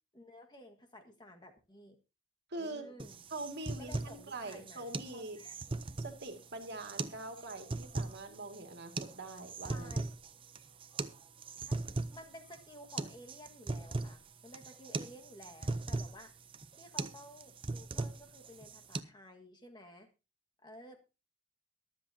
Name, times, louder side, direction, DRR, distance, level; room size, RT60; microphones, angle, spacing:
voice 1, 0.1-2.0 2.6-3.2 3.8-5.5 9.7-10.2 11.6-11.8 12.1-16.3 16.8-20.1 20.6-21.0, left 1 dB, 20° left, 4 dB, 1.7 m, -53 dB
voice 2, 2.5-2.9 3.3-5.4 6.0-9.9, right 2 dB, 60° right, 5 dB, 2.2 m, -43 dB
sound 1, 3.0-19.0, right 3 dB, 25° right, 0.6 m, -40 dB
23.0 x 7.8 x 2.8 m, 0.29 s
head